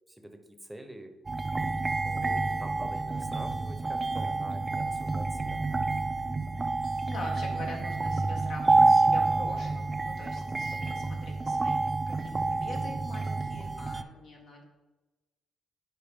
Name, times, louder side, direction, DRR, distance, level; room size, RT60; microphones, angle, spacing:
voice 1, 0.1-1.2 2.0-5.6 10.6-10.9, right 1 dB, 10° right, 7 dB, 0.8 m, -47 dB
sound 1, 1.3-14.0, right 3 dB, 25° right, 0.4 m, -28 dB
voice 2, 6.7-14.7, left 2 dB, 70° left, 0 dB, 1.8 m, -44 dB
10.0 x 4.0 x 3.6 m, 1.1 s
cardioid pair, 90°, 0 cm